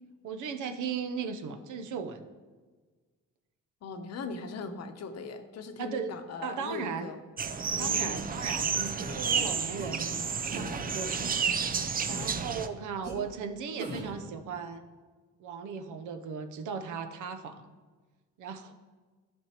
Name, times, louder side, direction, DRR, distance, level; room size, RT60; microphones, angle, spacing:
voice 1, 0.2-2.3 5.8-7.1 7.8-11.3 12.0-14.8 15.4-17.8 18.4-18.7, right 6 dB, 75° right, 8 dB, 0.7 m, -37 dB
voice 2, 3.8-7.2 7.7-8.3 12.0-12.3, left 4 dB, 60° left, 7 dB, 0.8 m, -40 dB
sound 1, 7.4-12.7, right 6 dB, 30° right, 0.5 m, -31 dB
sound 2, 8.4-8.5 9.0-9.3 9.8-9.9 10.5-10.8 11.4-11.5 12.1-12.5 13.0-13.1 13.8-14.1, right 1 dB, 60° right, 2.5 m, -40 dB
11.5 x 5.3 x 2.9 m, 1.4 s
cardioid pair, 90°, 30 cm